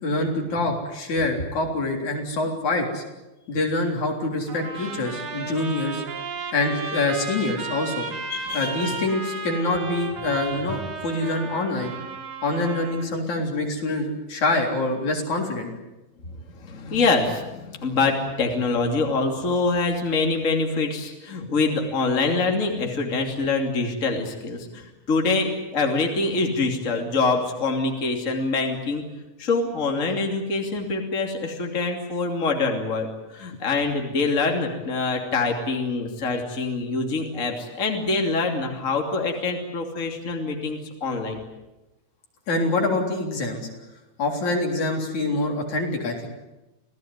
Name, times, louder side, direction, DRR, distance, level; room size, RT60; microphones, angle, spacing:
voice 1, 0.0-3.0 3.5-6.0 6.5-8.1 8.5-11.9 12.4-15.7 42.5-43.7 44.2-46.3, left 2 dB, 70° left, 2 dB, 5.0 m, -25 dB
Trumpet, 4.5-13.1, right 4 dB, 70° right, 4.3 m, -34 dB
voice 2, 8.0-9.0 16.2-29.0 29.4-41.4, left 3 dB, 25° left, 2 dB, 3.0 m, -25 dB
27.5 x 17.5 x 9.6 m, 1.0 s
omnidirectional pair, 3.5 m